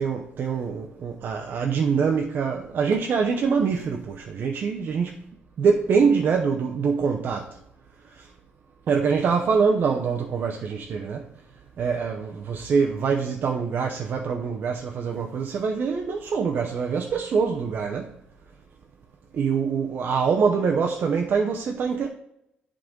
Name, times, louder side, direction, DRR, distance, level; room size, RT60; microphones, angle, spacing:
voice 1, 0.0-5.2 5.6-7.5 8.9-11.2 11.8-18.1 19.3-22.1, right 5 dB, 60° right, 0.7 m, -24 dB
10.5 x 3.9 x 3.8 m
cardioid pair, 115°, 4 cm